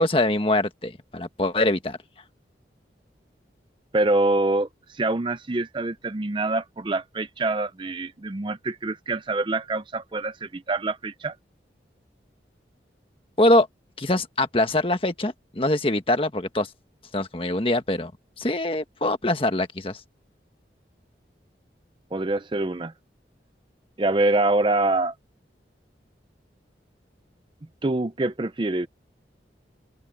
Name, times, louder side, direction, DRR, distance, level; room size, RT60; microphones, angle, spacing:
voice 1, 0.0-2.0 13.4-13.7 14.0-16.7 17.1-18.1 18.4-20.0, left 1 dB, 30° left, 1.5 m, -23 dB
voice 2, 3.9-11.4 22.1-22.9 24.0-25.1 27.8-28.9, right 2 dB, 25° right, 0.5 m, -25 dB
open air
head